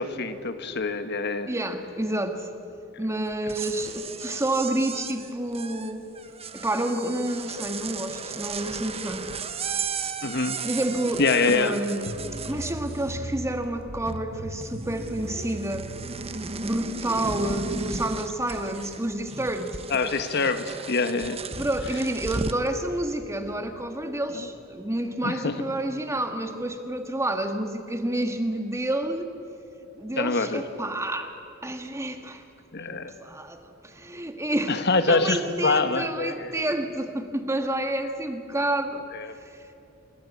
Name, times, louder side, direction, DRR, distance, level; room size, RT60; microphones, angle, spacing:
voice 1, 0.0-1.5 10.2-10.6 11.2-11.8 19.9-21.4 24.3-24.5 25.2-25.5 30.2-30.6 32.7-33.1 34.7-36.6 39.1-39.3, left 3 dB, 55° left, 9 dB, 1.3 m, -25 dB
voice 2, 1.5-2.5 3.0-6.1 6.5-9.3 10.6-12.0 12.4-15.9 16.6-19.8 21.6-29.3 30.0-31.3 31.6-32.4 32.9-34.8 35.1-39.0, right 1 dB, 15° right, 6 dB, 1.7 m, -29 dB
sound 1, 3.3-13.3 13.6-14.4 14.6-22.7, right 4 dB, 30° right, 1.1 m, -35 dB
sound 2, 12.1-17.4, right 1 dB, 70° right, 1.7 m, -38 dB
27.5 x 23.0 x 8.3 m, 2.7 s
head